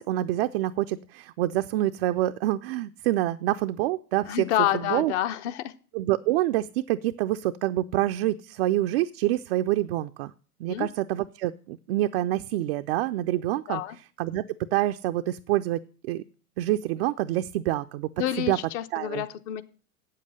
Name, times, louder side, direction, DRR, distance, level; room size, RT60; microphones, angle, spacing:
voice 1, 0.0-4.5 4.7-5.1 5.9-10.3 10.6-13.8 14.2-14.4 14.7-15.8 16.1-16.2 16.6-18.1 18.5-18.6 18.9-19.2, right 15 dB, 45° right, 0.4 m, -26 dB
voice 2, 4.3-5.7 10.7-10.9 13.7-14.0 18.2-19.6, left 12 dB, 50° left, 0.9 m, -28 dB
8.5 x 7.5 x 6.5 m
hypercardioid pair, 100°, 46 cm